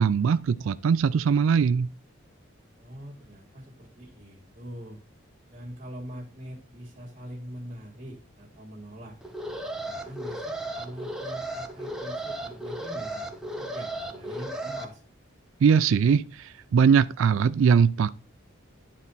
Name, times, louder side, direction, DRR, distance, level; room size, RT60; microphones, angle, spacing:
voice 1, 0.0-1.9 15.6-18.1, right 6 dB, 75° right, 0.3 m, -21 dB
voice 2, 2.8-5.0 5.5-9.2 9.8-15.0, equal, 30° right, 1.7 m, -43 dB
Alarm, 9.2-14.8, right 1 dB, 5° right, 0.8 m, -35 dB
11.0 x 4.2 x 4.0 m
head